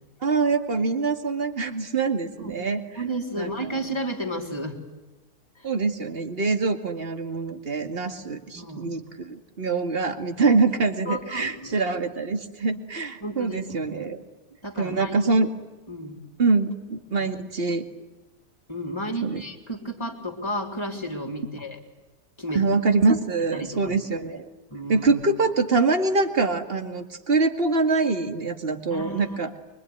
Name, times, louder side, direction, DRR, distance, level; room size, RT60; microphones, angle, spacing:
voice 1, 0.2-2.8 3.4-3.8 5.6-14.2 14.8-15.5 16.4-17.8 19.2-19.4 22.5-24.5 24.9-29.5, right 3 dB, 35° right, 7 dB, 2.3 m, -24 dB
voice 2, 3.0-4.8 5.6-5.7 8.5-8.9 11.1-11.8 13.2-13.6 14.6-15.2 15.9-16.2 17.2-17.3 18.7-21.8 22.4-22.7 23.5-24.0 24.7-25.1 28.9-29.4, right 1 dB, 15° left, 3 dB, 3.9 m, -32 dB
25.0 x 25.0 x 9.6 m, 1.1 s
omnidirectional pair, 1.8 m